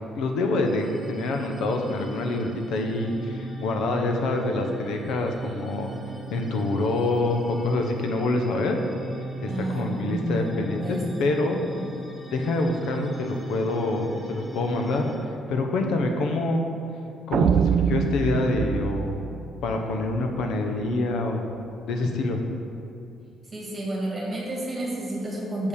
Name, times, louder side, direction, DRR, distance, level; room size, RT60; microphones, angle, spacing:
voice 1, 0.1-5.9 6.3-8.8 9.4-11.6 12.3-16.7 17.3-19.2 19.6-21.5 21.9-22.4, left 2 dB, 80° left, 3 dB, 1.0 m, -26 dB
sound 1, 0.6-15.1, right 1 dB, 5° left, 1.2 m, -38 dB
voice 2, 9.5-11.3 23.5-25.7, right 1 dB, 30° right, -3 dB, 1.9 m, -30 dB
sound 2, 17.3-20.4, right 7 dB, 55° right, 0.3 m, -25 dB
6.9 x 5.5 x 6.5 m, 2.7 s
cardioid pair, 130°, 0 cm